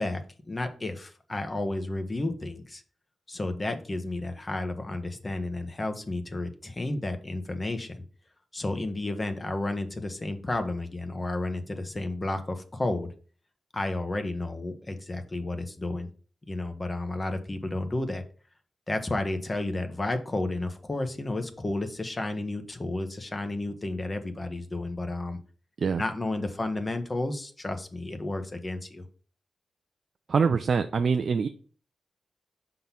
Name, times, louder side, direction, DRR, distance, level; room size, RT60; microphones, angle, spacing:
voice 1, 0.0-2.8 3.3-8.0 8.5-13.1 13.7-16.1 16.5-18.2 18.9-25.4 26.0-29.1, left 2 dB, 35° left, 7 dB, 1.2 m, -32 dB
voice 2, 30.3-31.5, right 5 dB, 65° right, 8 dB, 0.4 m, -24 dB
5.4 x 3.9 x 5.9 m, 0.41 s
supercardioid pair, 40°, 0 cm